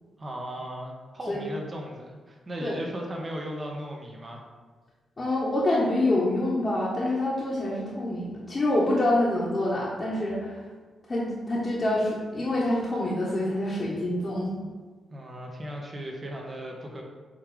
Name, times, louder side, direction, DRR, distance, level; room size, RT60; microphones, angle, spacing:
voice 1, 0.2-4.4 15.1-17.0, equal, 40° right, 0 dB, 1.3 m, -37 dB
voice 2, 5.2-10.6 11.1-14.5, left 1 dB, 40° left, -7 dB, 1.5 m, -26 dB
5.6 x 3.4 x 5.0 m, 1.4 s
supercardioid pair, 45°, 0 cm